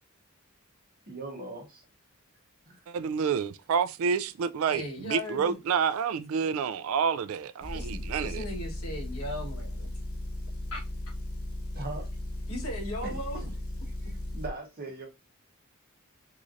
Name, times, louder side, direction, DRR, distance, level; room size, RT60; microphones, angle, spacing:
voice 1, 1.1-1.8 2.7-2.8 11.7-12.1 13.1-13.5 14.0-15.1, right 2 dB, 45° right, 1.1 m, -40 dB
voice 2, 2.9-8.4, right 6 dB, 70° right, 0.3 m, -29 dB
voice 3, 4.7-5.6 7.7-9.9 10.7-10.8 12.5-13.4, left 1 dB, 85° left, 1.4 m, -37 dB
Motor vehicle (road) / Engine, 7.6-14.5, left 1 dB, 70° left, 0.9 m, -36 dB
3.7 x 3.1 x 2.5 m
head